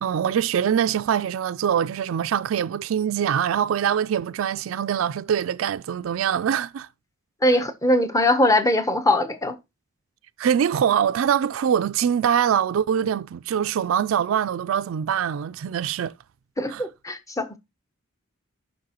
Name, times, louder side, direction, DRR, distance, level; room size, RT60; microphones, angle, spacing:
voice 1, 0.0-6.9 10.4-16.1 16.7-16.8, right 8 dB, 70° right, 0.3 m, -23 dB
voice 2, 7.4-9.6 16.6-17.6, left 1 dB, 15° left, 0.8 m, -21 dB
12.5 x 5.5 x 2.9 m
head